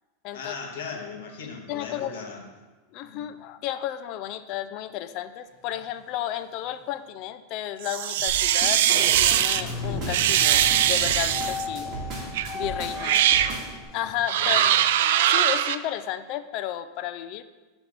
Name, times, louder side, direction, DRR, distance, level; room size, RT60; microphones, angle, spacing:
voice 1, 0.3-2.4 3.0-3.3 13.0-13.3 14.4-14.7, left 5 dB, 80° left, 1 dB, 1.3 m, -38 dB
voice 2, 1.7-2.2 2.9-11.9 12.5-13.2 13.9-14.7 15.3-17.4, left 12 dB, 40° left, 12 dB, 0.3 m, -33 dB
sound 1, 5.6-5.9 6.2-6.3 6.6-6.7 8.2-8.5 8.8-14.9, left 3 dB, 25° left, 2.3 m, -36 dB
sound 2, 7.8-9.6 10.1-11.7 12.3-12.5 13.0-13.5 14.2-15.8, right 11 dB, 70° right, 0.3 m, -21 dB
sound 3, 8.3-13.8, right 3 dB, 30° right, 1.9 m, -36 dB
7.2 x 3.5 x 5.9 m, 1.3 s
supercardioid pair, 160°, 0 cm